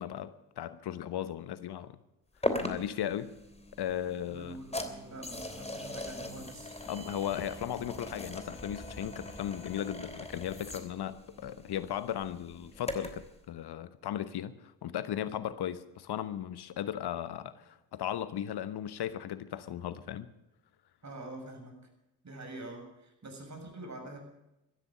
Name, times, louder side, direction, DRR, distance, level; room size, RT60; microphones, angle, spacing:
voice 1, 0.0-2.0 2.6-3.3 3.8-4.6 6.9-20.3, left 10 dB, 60° left, 1.0 m, -36 dB
sound 1, 2.4-13.3, left 1 dB, 15° left, 3.1 m, -40 dB
voice 2, 4.3-6.9 21.0-21.8 22.2-24.2, right 2 dB, 40° right, 7.0 m, -45 dB
16.0 x 14.0 x 6.6 m
hypercardioid pair, 40°, 45 cm